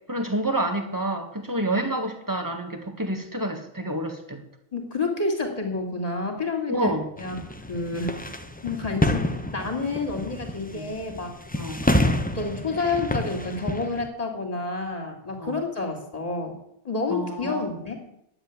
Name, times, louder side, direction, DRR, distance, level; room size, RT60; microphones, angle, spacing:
voice 1, 0.1-4.4 6.7-7.1 10.7-10.9 11.6-11.8 15.4-15.6 17.1-17.6, right 1 dB, 15° right, 5 dB, 1.7 m, -28 dB
voice 2, 4.7-7.3 7.7-8.1 8.6-11.3 12.3-16.5 16.8-18.0, left 3 dB, 25° left, 4 dB, 3.0 m, -29 dB
sound 1, 7.2-14.1, left 1 dB, 10° left, 0.7 m, -28 dB
11.0 x 7.9 x 9.5 m, 0.78 s
omnidirectional pair, 1.4 m